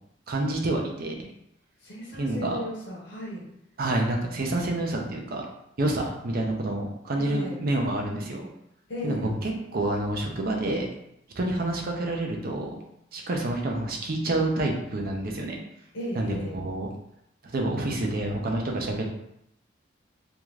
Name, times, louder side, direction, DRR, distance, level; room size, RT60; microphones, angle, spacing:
voice 1, 0.3-1.3 2.1-2.6 3.8-5.5 5.8-8.5 9.0-10.9 11.4-12.8 13.1-15.6 16.1-16.9 17.4-19.1, right 2 dB, 50° right, 1 dB, 0.5 m, -28 dB
voice 2, 1.8-3.5 7.2-7.6 8.9-9.3 15.9-16.6, equal, 75° left, -5 dB, 0.7 m, -35 dB
2.5 x 2.3 x 3.1 m, 0.79 s
head